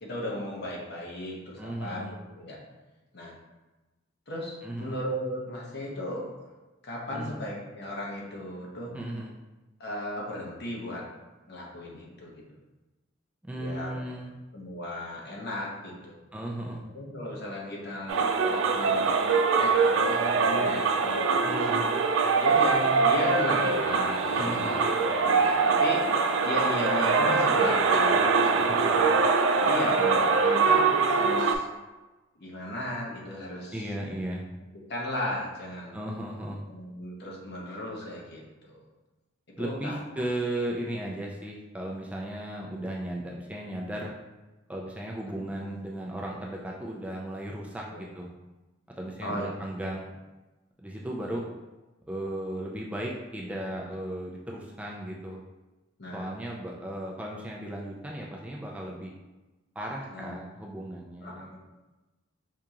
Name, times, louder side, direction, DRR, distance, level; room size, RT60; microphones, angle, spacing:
voice 1, 0.0-2.6 3.1-3.3 4.3-6.5 6.8-8.9 9.8-11.0 11.5-12.4 13.5-14.1 14.5-16.2 16.8-19.1 19.6-21.7 22.4-26.1 26.4-28.9 29.5-31.7 32.4-34.3 34.9-36.0 36.7-38.8 39.6-40.2 45.4-45.7 47.9-48.0 49.2-49.6 56.0-56.3 56.6-56.8 60.1-60.4 61.2-61.6, left 1 dB, 60° left, -3 dB, 0.9 m, -35 dB
voice 2, 1.6-2.1 4.6-5.0 7.1-7.4 8.9-9.3 13.4-14.3 16.3-16.8 21.4-21.9 24.4-24.8 33.7-34.5 35.9-36.6 39.6-44.1 44.7-48.3 49.0-50.2 50.8-51.5 52.1-55.4 56.1-59.1 59.8-61.6, right 1 dB, 5° right, -2 dB, 0.3 m, -36 dB
sound 1, 18.1-31.6, right 4 dB, 85° right, 0.3 m, -23 dB
4.6 x 2.8 x 2.4 m, 1.1 s
head